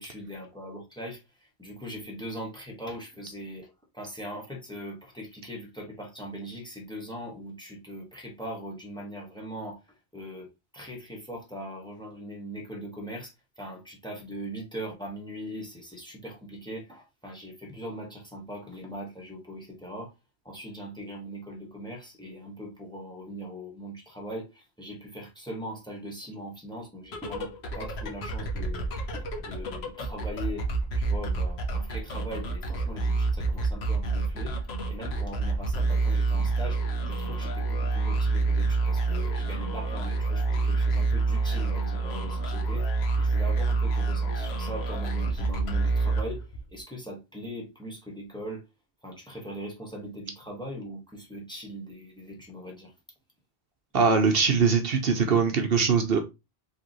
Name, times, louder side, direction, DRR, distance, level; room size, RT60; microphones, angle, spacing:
voice 1, 0.0-9.8 10.1-10.5 10.7-20.1 20.4-30.7 30.9-34.6 34.9-48.7 49.0-52.9, equal, 5° left, 1.4 m, -40 dB
sound 1, 27.0-46.8, right 3 dB, 80° left, 1.2 m, -28 dB
voice 2, 53.9-56.2, right 5 dB, 65° right, 0.9 m, -22 dB
4.9 x 3.3 x 3.0 m
omnidirectional pair, 1.1 m